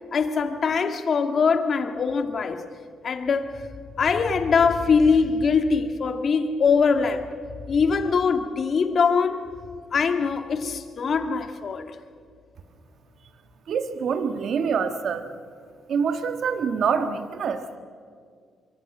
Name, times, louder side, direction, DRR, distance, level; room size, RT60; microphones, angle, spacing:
voice 1, 0.1-2.6 3.0-3.6 4.0-7.4 7.7-9.4 9.9-11.9, left 5 dB, 50° left, 1.8 m, -22 dB
voice 2, 13.7-15.3 15.9-17.8, right 6 dB, 65° right, 1.6 m, -26 dB
24.0 x 24.0 x 6.1 m
cardioid pair, 90°, 0 cm